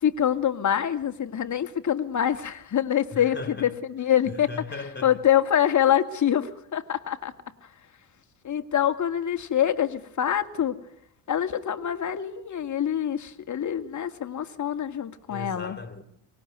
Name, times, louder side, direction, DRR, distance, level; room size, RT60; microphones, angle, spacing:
voice 1, 0.0-4.5 5.0-7.3 8.4-10.8 11.3-15.8, left 10 dB, 35° left, 2.2 m, -25 dB
voice 2, 3.1-3.7 4.3-5.2 15.3-16.0, left 4 dB, 20° left, 3.2 m, -37 dB
24.5 x 20.0 x 9.5 m
hypercardioid pair, 70°, 49 cm